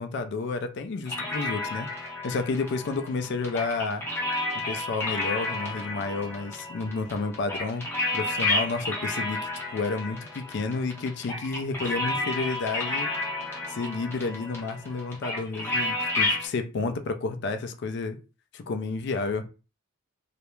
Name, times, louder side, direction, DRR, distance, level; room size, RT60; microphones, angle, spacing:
voice 1, 0.0-1.9 2.2-4.0 4.7-7.9 8.1-9.4 9.7-13.1 13.7-18.2 18.5-19.4, left 3 dB, 50° left, 0.3 m, -30 dB
sound 1, 1.1-16.5, left 2 dB, 10° left, 0.6 m, -31 dB
2.3 x 2.0 x 3.0 m
head